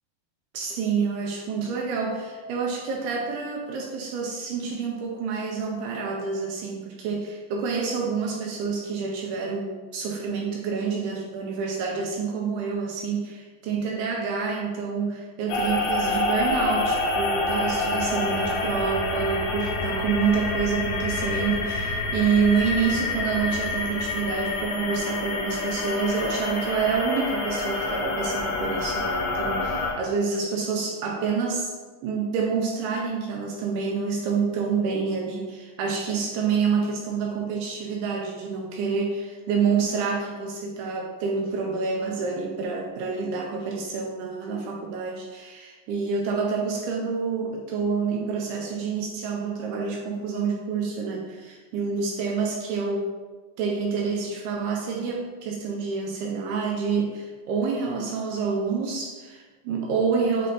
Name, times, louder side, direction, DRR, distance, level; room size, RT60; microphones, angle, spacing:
voice 1, 0.5-31.7 32.0-53.1 53.6-60.5, right 5 dB, 80° right, -1 dB, 2.5 m, -28 dB
sound 1, 15.5-29.9, left 2 dB, 85° left, 3.1 m, -27 dB
7.5 x 3.3 x 3.9 m, 1.3 s
omnidirectional pair, 4.9 m